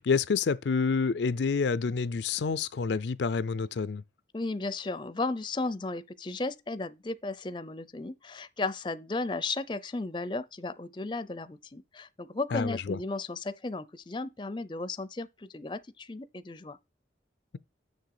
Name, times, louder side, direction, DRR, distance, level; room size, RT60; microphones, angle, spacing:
voice 1, 0.0-4.0 12.5-13.0, left 5 dB, 75° left, 0.4 m, -28 dB
voice 2, 4.3-16.8, left 3 dB, 25° left, 0.5 m, -35 dB
6.7 x 6.5 x 4.8 m
head